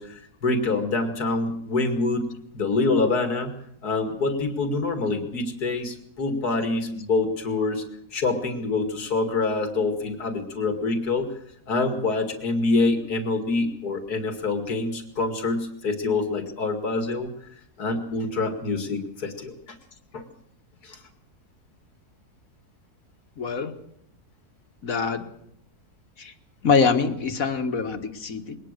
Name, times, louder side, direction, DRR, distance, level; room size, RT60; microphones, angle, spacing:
voice 1, 0.0-2.3 2.5-3.5 3.8-7.8 8.1-11.3 11.7-17.3 17.8-19.8 20.1-20.2 20.8-21.0, left 3 dB, 85° left, 6 dB, 2.8 m, -26 dB
voice 2, 23.4-23.7 24.8-25.3 26.2-26.3 26.6-28.6, left 5 dB, 65° left, 7 dB, 2.1 m, -24 dB
22.0 x 19.5 x 6.7 m, 0.71 s
omnidirectional pair, 1.6 m